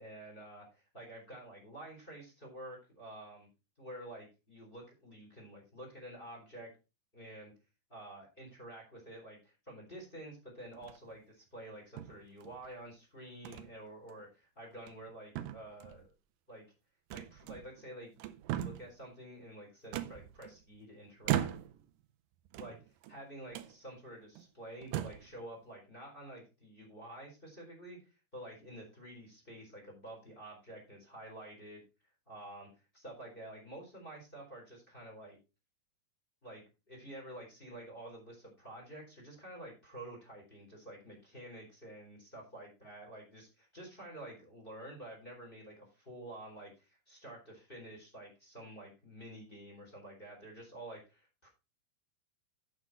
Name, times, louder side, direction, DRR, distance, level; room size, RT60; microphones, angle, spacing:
voice 1, 0.0-3.5 3.8-6.7 7.1-7.5 7.9-16.1 16.5-16.6 17.1-18.1 18.5-21.5 22.6-22.7 23.1-31.8 32.3-32.7 32.9-35.4 36.4-51.5, right 1 dB, 15° left, 1 dB, 4.0 m, -49 dB
sound 1, 10.7-11.2 12.0-12.7 13.5-13.7 14.1-14.2 14.7-15.1 15.4-16.1 17.1-17.8 18.2-19.0 19.9-20.8 21.2-21.9 22.5-23.1 23.5-23.7 24.4-24.5 24.8-25.3, right 12 dB, 80° right, 2.3 m, -38 dB
9.1 x 7.6 x 4.3 m, 0.29 s
omnidirectional pair, 4.0 m